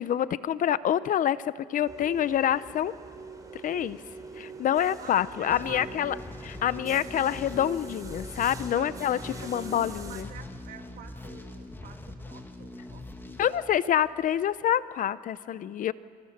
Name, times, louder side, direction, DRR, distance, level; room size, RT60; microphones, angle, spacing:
voice 1, 0.0-2.9 3.5-4.0 4.4-6.2 6.4-10.3 13.4-15.9, left 10 dB, 55° left, 17 dB, 0.7 m, -27 dB
sound 1, 1.8-10.2, right 3 dB, 20° right, 3.4 m, -44 dB
voice 2, 5.0-6.2 8.7-13.8, right 8 dB, 60° right, 5 dB, 2.2 m, -48 dB
sound 2, 5.5-14.4, left 2 dB, 10° left, 2.1 m, -43 dB
26.5 x 26.0 x 6.6 m, 2.2 s
cardioid pair, 110°, 17 cm